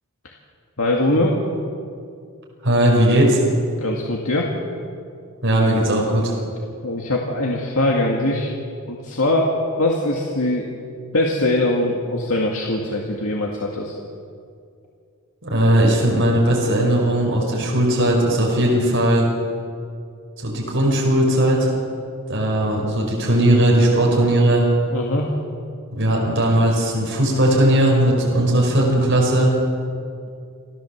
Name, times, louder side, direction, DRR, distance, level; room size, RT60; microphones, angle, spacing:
voice 1, 0.8-1.4 3.7-4.5 6.8-8.5 8.9-9.5 9.8-10.7 11.1-14.0 24.9-25.3, left 1 dB, 70° left, -1 dB, 2.1 m, -21 dB
voice 2, 2.6-3.4 5.4-6.3 15.4-19.3 20.4-21.7 22.3-24.7 26.0-29.5, right 1 dB, 55° right, -2 dB, 5.0 m, -18 dB
28.0 x 14.5 x 7.3 m, 2.3 s
head